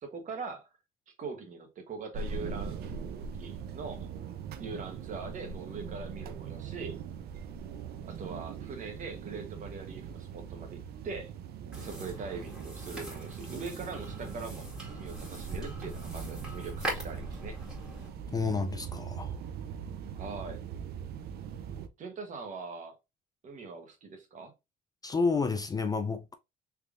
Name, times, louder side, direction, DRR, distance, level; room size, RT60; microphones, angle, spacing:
voice 1, 0.0-0.7 1.2-2.8 3.4-4.1 4.6-7.0 8.0-11.3 11.8-17.5 20.2-20.6 22.0-23.0 23.4-24.5, right 4 dB, 50° right, 1.2 m, -42 dB
sound 1, 2.1-21.9, right 6 dB, 70° right, 0.5 m, -41 dB
sound 2, 11.7-18.1, equal, 5° right, 2.0 m, -42 dB
voice 2, 18.3-19.4 25.0-26.3, left 4 dB, 20° left, 0.4 m, -30 dB
3.4 x 3.2 x 2.5 m
cardioid pair, 110°, 17 cm